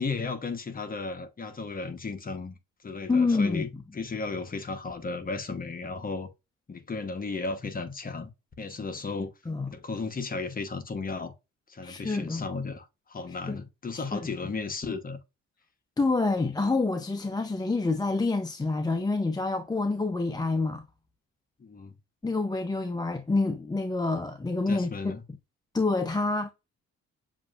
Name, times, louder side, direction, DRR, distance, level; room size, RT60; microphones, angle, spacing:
voice 1, 0.0-2.6 2.8-6.3 6.7-8.3 8.6-9.3 9.7-11.3 11.7-15.2 21.6-22.0 24.7-25.2, left 4 dB, 30° left, 0.9 m, -34 dB
voice 2, 3.1-3.6 9.5-9.7 11.8-12.5 13.5-13.6 13.9-14.2 16.0-20.8 22.2-25.1 25.7-26.5, left 3 dB, 15° left, 0.6 m, -27 dB
7.1 x 2.7 x 2.4 m
cardioid pair, 90°, 30 cm